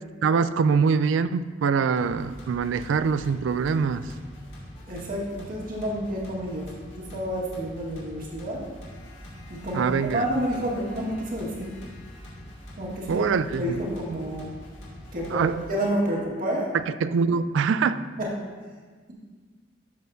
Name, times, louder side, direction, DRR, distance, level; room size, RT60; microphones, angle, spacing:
voice 1, 0.2-4.1 9.7-10.2 13.1-13.8 15.3-15.6 17.0-18.0, right 5 dB, 90° right, 14 dB, 0.3 m, -24 dB
sound 1, 2.0-15.7, equal, 90° left, 2.0 m, -44 dB
voice 2, 4.9-8.6 9.5-11.7 12.8-13.2 13.6-14.5 15.1-16.7 18.2-18.3, right 1 dB, 50° right, -3 dB, 1.7 m, -29 dB
12.0 x 6.3 x 2.7 m, 1.5 s
head